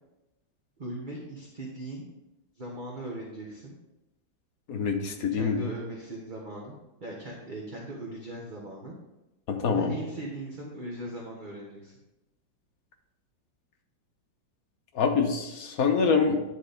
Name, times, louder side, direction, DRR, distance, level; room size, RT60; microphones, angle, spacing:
voice 1, 0.8-2.1 2.6-3.7 5.3-6.7 7.0-9.0 9.7-11.9, right 1 dB, 30° right, -2 dB, 1.1 m, -39 dB
voice 2, 4.7-5.6 9.5-9.9 14.9-16.4, left 5 dB, 55° left, 4 dB, 1.1 m, -25 dB
10.0 x 4.2 x 5.0 m, 0.97 s
omnidirectional pair, 2.1 m